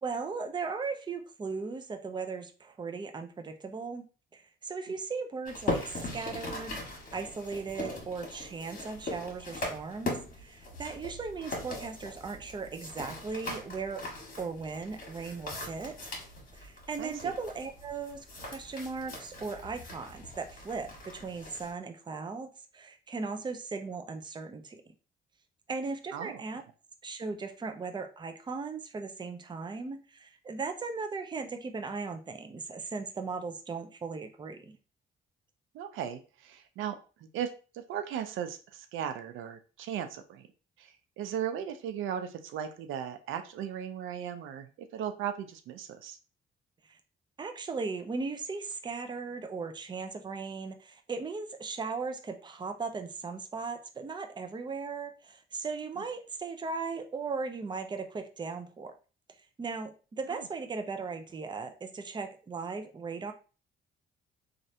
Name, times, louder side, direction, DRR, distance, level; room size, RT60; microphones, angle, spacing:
voice 1, 0.0-4.1 4.3-6.8 7.1-14.0 14.4-16.1 16.5-24.8 25.7-26.6 27.0-34.8 46.8-47.0 47.4-58.9 59.6-63.3, right 4 dB, 20° right, 6 dB, 0.5 m, -37 dB
sound 1, 5.5-21.7, left 2 dB, 45° left, 1.7 m, -40 dB
voice 2, 17.0-17.3 26.1-26.4 35.7-40.5 40.8-46.2 60.3-60.5, right 9 dB, 85° right, 8 dB, 0.5 m, -37 dB
3.1 x 2.6 x 2.7 m, 0.35 s
cardioid pair, 90°, 20 cm